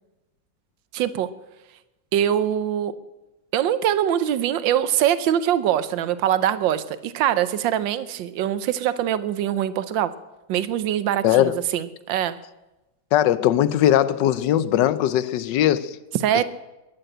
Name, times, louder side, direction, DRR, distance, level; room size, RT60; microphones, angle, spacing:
voice 1, 0.9-1.3 2.1-2.9 3.5-10.1 10.5-12.4 16.1-16.4, right 10 dB, 80° right, 1.5 m, -23 dB
voice 2, 11.2-11.5 13.1-16.0, left 12 dB, 75° left, 1.3 m, -19 dB
22.0 x 7.9 x 7.8 m
omnidirectional pair, 2.0 m